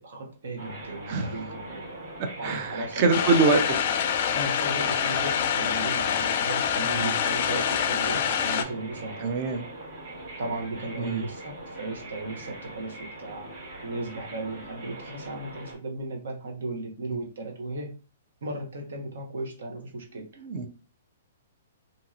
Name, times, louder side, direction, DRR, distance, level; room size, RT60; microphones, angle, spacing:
voice 1, 0.0-1.9 2.4-3.5 4.3-9.3 10.4-13.5 13.8-17.9 18.4-20.4, right 2 dB, 75° right, 1.1 m, -36 dB
sound 1, 0.6-15.7, right 2 dB, 55° right, 1.6 m, -41 dB
voice 2, 2.4-3.7 6.9-7.1 9.2-9.7 11.0-11.2 20.4-20.7, right 4 dB, 35° right, 0.5 m, -24 dB
sound 2, 3.1-8.6, left 8 dB, 45° left, 0.3 m, -26 dB
2.8 x 2.7 x 2.4 m
hypercardioid pair, 165°, 0 cm